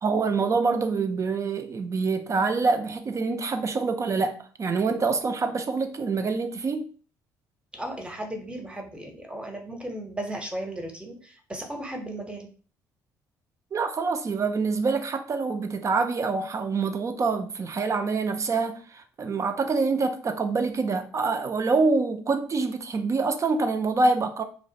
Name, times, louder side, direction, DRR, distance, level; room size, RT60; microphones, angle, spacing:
voice 1, 0.0-6.9 13.7-24.4, right 4 dB, 35° right, 0.4 m, -26 dB
voice 2, 7.7-12.5, right 1 dB, 10° right, 0.7 m, -35 dB
2.4 x 2.1 x 2.6 m
hypercardioid pair, 60°, 9 cm